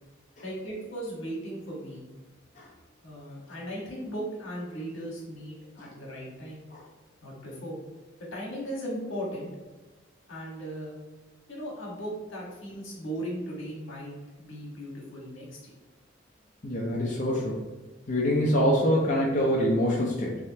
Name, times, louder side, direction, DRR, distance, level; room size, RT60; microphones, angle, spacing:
voice 1, 0.4-2.0 3.0-6.6 7.2-7.8 8.2-9.5 10.3-11.0 11.5-15.7, right 1 dB, 85° left, -3 dB, 1.4 m, -37 dB
voice 2, 16.6-17.7 18.1-20.4, equal, 40° left, -4 dB, 0.6 m, -25 dB
3.5 x 3.2 x 2.8 m, 1.2 s
head